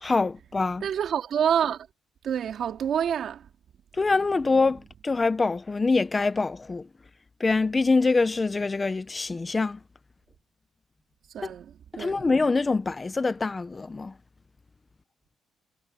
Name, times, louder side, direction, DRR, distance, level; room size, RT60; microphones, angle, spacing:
voice 1, 0.0-0.8 3.9-6.9 7.4-9.8 11.4-11.5 11.9-14.1, left 3 dB, 25° left, 1.0 m, -25 dB
voice 2, 0.8-1.9 2.2-3.5 11.3-12.3, right 8 dB, 65° right, 3.4 m, -27 dB
cardioid pair, 90°, 0 cm